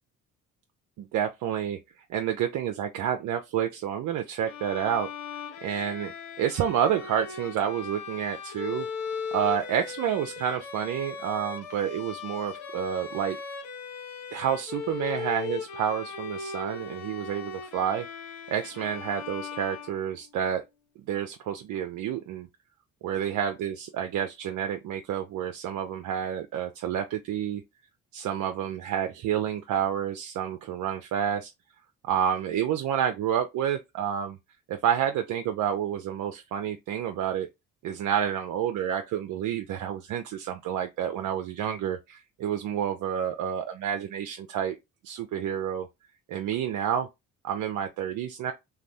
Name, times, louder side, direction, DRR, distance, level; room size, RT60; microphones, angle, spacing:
voice 1, 1.0-5.1 5.6-6.1 6.4-8.9 9.3-13.4 14.3-18.1 18.5-20.6 21.1-22.5 23.0-27.6 28.1-31.5 32.0-34.4 34.7-37.5 37.8-44.8 45.0-45.9 46.3-47.1 47.4-48.5, right 9 dB, 50° right, 0.5 m, -29 dB
Bowed string instrument, 4.4-20.4, left 6 dB, 75° left, 0.8 m, -38 dB
2.5 x 2.3 x 3.3 m
hypercardioid pair, 50°, 40 cm